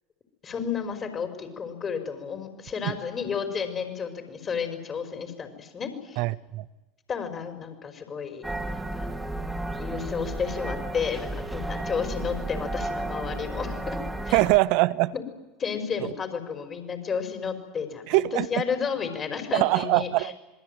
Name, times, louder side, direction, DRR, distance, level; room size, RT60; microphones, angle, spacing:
voice 1, 0.4-6.2 7.1-8.4 8.7-9.1 9.8-14.0 14.2-14.4 15.1-15.2 15.6-18.2 18.5-20.4, left 6 dB, 30° left, 7 dB, 5.5 m, -32 dB
voice 2, 6.2-6.7 14.3-15.1 18.1-18.5 19.5-20.3, right 20 dB, 60° right, 17 dB, 0.9 m, -22 dB
sound 1, 8.4-14.6, right 1 dB, 10° right, 2.8 m, -33 dB
26.5 x 21.0 x 9.5 m, 1.2 s
figure-of-eight pair, 75°, 0 cm